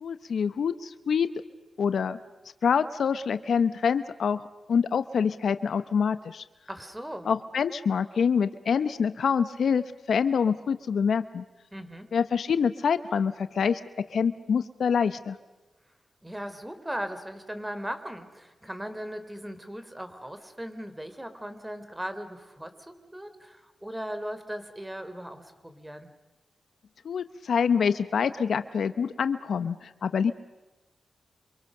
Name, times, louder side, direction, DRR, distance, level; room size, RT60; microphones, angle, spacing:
voice 1, 0.0-1.3 1.8-2.2 2.6-4.4 4.7-6.4 7.3-11.4 12.1-13.8 14.1-15.4 27.0-30.3, left 6 dB, 75° left, 13 dB, 0.8 m, -26 dB
voice 2, 6.7-7.3 11.7-12.1 16.2-26.1, equal, 10° right, 9 dB, 3.5 m, -38 dB
29.0 x 25.5 x 6.7 m, 1.2 s
cardioid pair, 55°, 0 cm